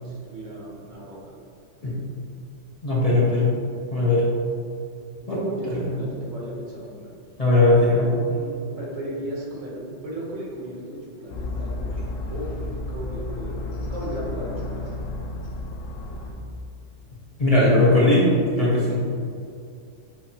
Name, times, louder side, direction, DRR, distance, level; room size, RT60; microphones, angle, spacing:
voice 1, 0.0-1.3 5.2-7.1 8.3-14.8, right 1 dB, 80° right, -4 dB, 1.5 m, -35 dB
voice 2, 2.8-3.5 3.9-4.2 5.3-5.4 5.7-6.0 7.4-8.1 17.4-18.3 18.6-18.9, left 2 dB, 30° left, -7 dB, 0.8 m, -19 dB
sound 1, 11.3-16.3, left 2 dB, 80° left, 1.0 m, -32 dB
7.0 x 2.7 x 2.8 m, 2.4 s
omnidirectional pair, 1.4 m